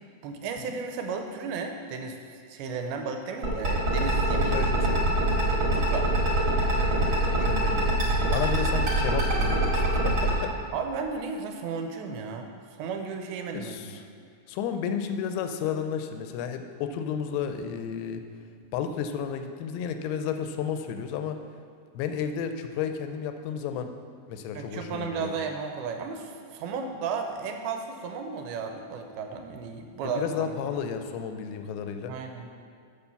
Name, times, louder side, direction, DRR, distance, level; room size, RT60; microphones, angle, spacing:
voice 1, 0.2-4.6 5.7-6.1 10.7-12.5 12.8-13.9 24.6-30.3 32.1-32.5, right 5 dB, 80° right, 5 dB, 2.4 m, -34 dB
sound 1, 3.4-10.3, right 2 dB, 40° right, 1.9 m, -24 dB
voice 2, 4.5-5.2 6.9-8.0 8.3-10.6 13.5-14.0 14.5-18.2 18.7-21.4 21.9-23.9 24.3-25.3 30.0-32.1, left 7 dB, 85° left, 7 dB, 2.5 m, -32 dB
6.9 x 5.3 x 6.8 m, 2.2 s
omnidirectional pair, 4.5 m